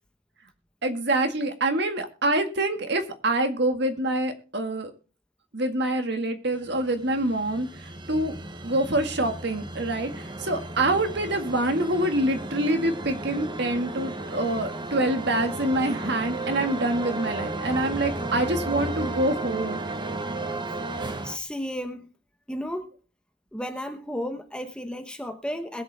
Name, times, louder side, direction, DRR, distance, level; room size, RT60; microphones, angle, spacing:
voice 1, 0.8-4.9 5.5-8.4 8.6-19.8, right 1 dB, 60° right, 6 dB, 1.9 m, -26 dB
sound 1, 6.7-21.4, right 2 dB, 25° right, 1.1 m, -34 dB
voice 2, 21.2-22.1 22.5-22.9 23.5-25.8, equal, 5° left, 6 dB, 1.0 m, -33 dB
21.5 x 8.0 x 3.4 m, 0.36 s
head